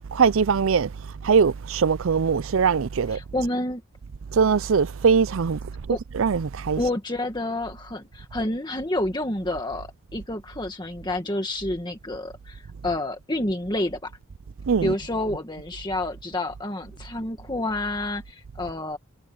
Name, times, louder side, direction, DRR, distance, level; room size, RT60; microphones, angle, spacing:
voice 1, 0.1-0.9 1.2-3.2 4.3-5.6 6.1-6.8 14.7-14.9, right 6 dB, 70° right, 0.5 m, -21 dB
voice 2, 3.1-3.8 5.9-6.0 6.8-14.1 14.8-19.0, left 1 dB, 20° left, 1.8 m, -29 dB
head